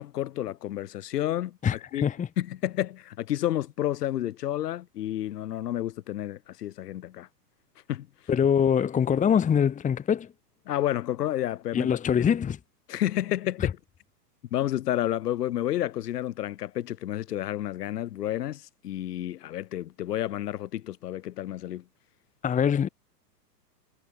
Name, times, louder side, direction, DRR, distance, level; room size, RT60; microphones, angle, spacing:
voice 1, 0.0-2.1 2.4-7.3 7.9-8.1 10.7-12.0 12.9-13.8 14.5-21.8, left 13 dB, 70° left, 5.2 m, -30 dB
voice 2, 1.6-2.3 8.3-10.3 11.7-12.6 13.6-13.7 22.4-22.9, left 8 dB, 15° left, 1.4 m, -23 dB
hypercardioid pair, 125°, 49 cm